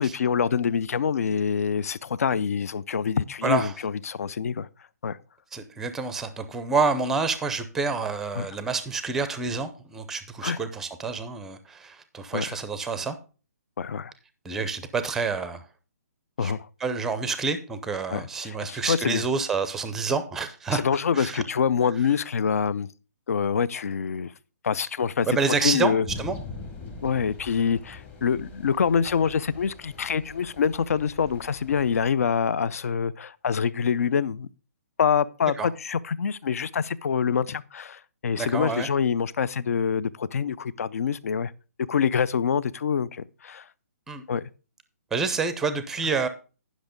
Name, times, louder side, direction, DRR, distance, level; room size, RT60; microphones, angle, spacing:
voice 1, 0.0-4.7 5.0-5.2 8.3-8.5 10.4-10.6 12.3-12.6 13.8-14.1 16.4-16.7 18.1-19.2 20.7-22.9 23.3-24.3 24.6-25.3 25.6-26.0 27.0-34.5 35.0-41.5 41.9-43.7 44.3-44.4, left 7 dB, 60° left, 0.5 m, -26 dB
voice 2, 3.4-3.7 5.5-13.2 14.4-15.7 16.4-16.5 16.8-20.8 21.1-21.4 25.3-26.4 35.6-35.7 38.4-38.9 44.1-44.2 45.1-46.3, right 4 dB, 5° right, 0.5 m, -28 dB
sound 1, 26.1-32.1, left 3 dB, 15° left, 0.9 m, -42 dB
10.0 x 6.1 x 5.1 m
hypercardioid pair, 170°, 9 cm